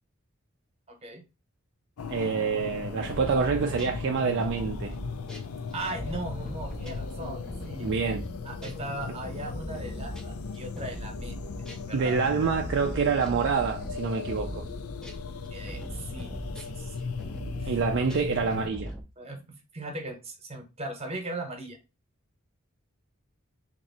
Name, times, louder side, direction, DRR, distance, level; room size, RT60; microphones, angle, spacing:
voice 1, 0.9-1.2 5.7-7.9 8.4-12.2 15.5-16.3 16.6-17.1 17.6-17.7 18.0-18.2 19.2-19.4 19.7-21.8, right 2 dB, 30° right, 1.0 m, -38 dB
sound 1, 2.0-18.7, left 5 dB, 90° left, 0.5 m, -38 dB
voice 2, 2.1-4.9 7.8-8.2 11.9-14.7 17.7-18.9, right 5 dB, 55° right, 0.4 m, -27 dB
sound 2, 3.0-11.9 12.3-19.0, equal, 5° left, 0.5 m, -40 dB
2.9 x 2.6 x 4.1 m
head